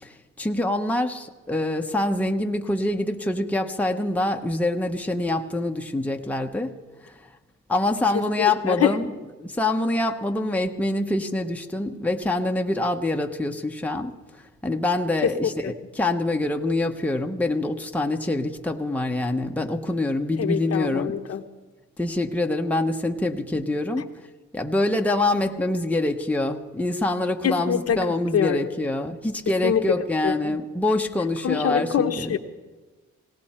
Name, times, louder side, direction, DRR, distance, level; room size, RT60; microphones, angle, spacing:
voice 1, 0.0-6.7 7.0-7.3 7.7-21.2 22.0-24.1 24.5-32.3, left 2 dB, 5° left, 3 dB, 1.0 m, -25 dB
voice 2, 8.1-9.0 15.2-15.3 15.6-15.7 20.4-21.4 27.4-28.0 28.3-28.6 29.6-29.8 30.2-30.6 31.4-32.4, left 8 dB, 55° left, 7 dB, 1.0 m, -24 dB
18.5 x 18.0 x 4.4 m, 1.3 s
cardioid pair, 90°, 30 cm